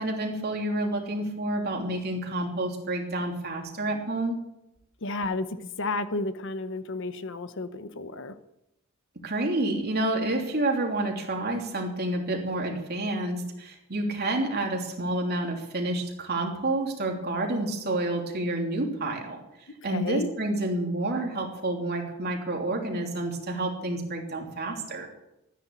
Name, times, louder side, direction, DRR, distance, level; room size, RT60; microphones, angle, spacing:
voice 1, 0.0-4.5 9.2-19.4 19.8-25.1, right 2 dB, 50° right, 1 dB, 3.2 m, -29 dB
voice 2, 5.0-5.5 5.8-8.3 19.8-20.3, left 2 dB, 60° left, 11 dB, 1.0 m, -32 dB
14.0 x 10.0 x 8.6 m, 0.86 s
head